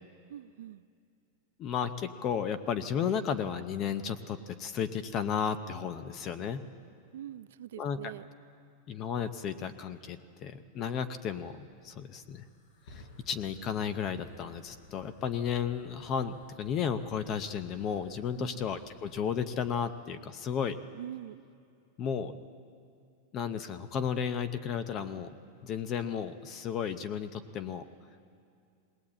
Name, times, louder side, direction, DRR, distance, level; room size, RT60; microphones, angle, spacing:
voice 1, 0.3-0.8 7.1-8.3 18.4-18.7 20.9-21.4, right 12 dB, 80° right, 16 dB, 0.5 m, -44 dB
voice 2, 1.6-6.6 7.8-8.0 8.9-12.5 12.9-20.8 22.0-22.4 23.3-25.3 25.6-27.8, left 7 dB, 25° left, 12 dB, 0.6 m, -33 dB
Fire, 11.8-20.3, left 2 dB, 75° left, 4.5 m, -57 dB
20.5 x 18.5 x 8.7 m, 2.4 s
supercardioid pair, 180°, 0 cm